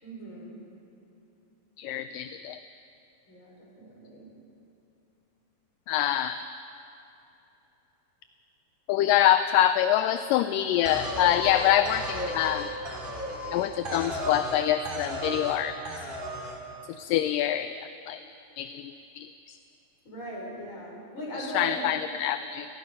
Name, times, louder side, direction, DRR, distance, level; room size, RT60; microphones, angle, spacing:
voice 1, 0.0-0.6 3.3-4.3 20.0-21.9, right 1 dB, 35° left, -4 dB, 6.2 m, -39 dB
voice 2, 1.8-2.6 5.9-6.4 8.9-12.7 13.5-15.8 17.0-17.8 18.1-18.2 18.6-19.6 21.4-22.7, left 12 dB, 80° left, 10 dB, 2.2 m, -25 dB
sound 1, 10.8-14.6 14.8-15.6 15.8-16.6, equal, 15° right, 2.2 m, -34 dB
27.0 x 18.0 x 5.5 m, 2.9 s
omnidirectional pair, 4.1 m